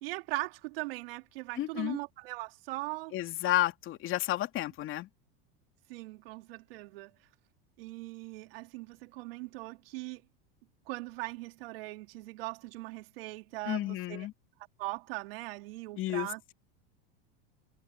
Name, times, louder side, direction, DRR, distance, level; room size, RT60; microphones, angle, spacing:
voice 1, 0.0-3.1 5.9-7.1 7.8-10.2 10.9-14.3 14.8-16.4, right 21 dB, 75° right, 2.8 m, -40 dB
voice 2, 1.6-2.0 3.1-5.1 13.7-14.3 16.0-16.3, left 14 dB, 45° left, 2.8 m, -31 dB
supercardioid pair, 120°, 30 cm